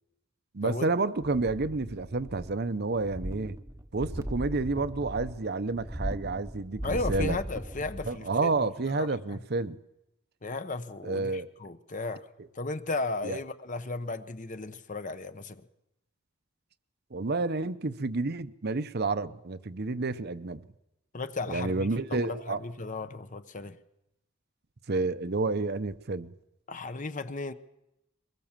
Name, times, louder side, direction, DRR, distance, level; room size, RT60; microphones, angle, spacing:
voice 1, 0.5-3.6 3.9-7.4 8.1-9.8 11.0-11.5 13.2-13.4 17.1-20.6 21.5-22.6 24.9-26.3, right 3 dB, 50° right, 0.8 m, -30 dB
sound 1, 1.2-2.6 2.9-8.2 8.6-8.7, equal, 15° right, 0.9 m, -38 dB
voice 2, 6.8-8.6 8.9-9.4 10.4-12.3 12.5-15.6 21.1-23.8 26.7-27.5, left 3 dB, 40° left, 0.9 m, -35 dB
23.0 x 20.5 x 7.4 m
head